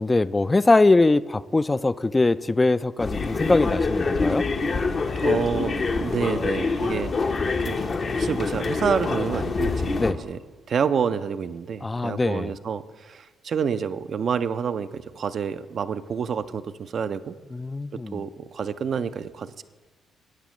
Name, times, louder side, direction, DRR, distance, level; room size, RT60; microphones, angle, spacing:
voice 1, 0.0-4.5 10.0-10.2 11.8-12.5 17.5-18.2, left 2 dB, 25° left, 16 dB, 0.3 m, -22 dB
sound 1, 3.0-10.1, left 4 dB, 50° left, 0.8 m, -25 dB
voice 2, 5.2-7.4 7.6-7.8 8.1-10.4 10.7-17.4 18.1-19.6, right 6 dB, 55° right, 11 dB, 0.4 m, -28 dB
14.0 x 8.9 x 3.1 m, 1.3 s
hypercardioid pair, 50°, 0 cm